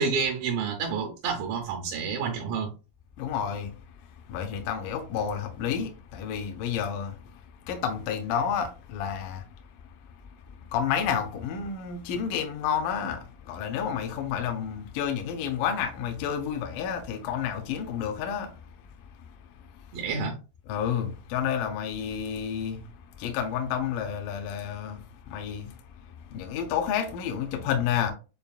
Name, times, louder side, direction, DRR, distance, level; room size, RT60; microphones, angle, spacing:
voice 1, 0.0-2.7 19.9-20.4, right 5 dB, 75° right, 2.2 m, -29 dB
voice 2, 3.2-3.8 4.3-9.5 10.5-18.6 19.7-19.8 20.7-25.8 26.3-28.1, left 8 dB, 85° left, 1.9 m, -30 dB
6.8 x 2.3 x 2.4 m
omnidirectional pair, 4.7 m